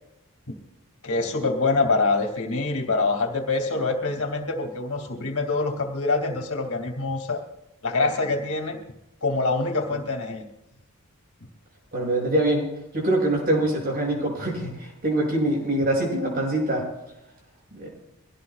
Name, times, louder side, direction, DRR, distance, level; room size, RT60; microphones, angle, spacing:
voice 1, 1.0-7.4 7.8-8.8 9.2-10.4, left 3 dB, 70° left, 3 dB, 2.6 m, -25 dB
voice 2, 11.9-12.7 12.9-16.9 17.7-17.9, right 1 dB, 40° right, -1 dB, 7.1 m, -24 dB
24.0 x 17.5 x 2.4 m, 0.85 s
head